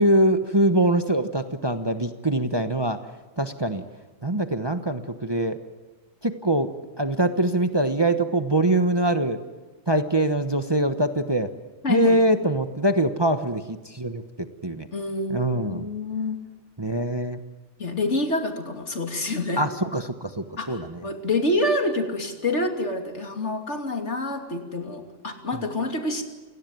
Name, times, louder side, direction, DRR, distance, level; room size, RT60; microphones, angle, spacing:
voice 1, 0.0-3.0 3.4-3.8 4.2-5.6 6.2-6.7 7.0-9.4 9.9-11.5 11.9-14.9 15.3-15.9 16.8-17.4 19.6-21.0, right 1 dB, 20° right, 8 dB, 1.1 m, -23 dB
voice 2, 11.8-12.2 14.9-16.4 17.8-19.6 20.6-26.2, left 2 dB, 65° left, 4 dB, 3.1 m, -27 dB
29.0 x 18.0 x 9.3 m, 1.3 s
omnidirectional pair, 1.3 m